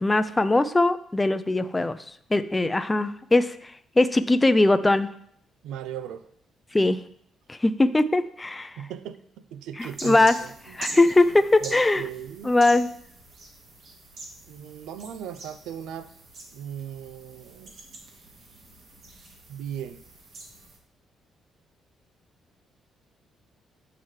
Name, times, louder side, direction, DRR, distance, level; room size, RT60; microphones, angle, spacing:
voice 1, 0.0-2.0 2.3-5.1 6.7-7.0 7.5-8.8 9.8-10.4 10.7-12.0 12.4-12.9, left 2 dB, 15° left, 11 dB, 0.4 m, -21 dB
voice 2, 5.6-6.3 8.8-9.2 9.5-10.7 11.0-11.1 11.6-12.5 14.5-16.1 16.5-17.7 19.5-20.0, right 9 dB, 90° right, 12 dB, 0.5 m, -37 dB
sound 1, 9.8-20.8, right 2 dB, 60° right, 1.7 m, -44 dB
9.0 x 5.8 x 3.2 m, 0.66 s
cardioid pair, 90°, 0 cm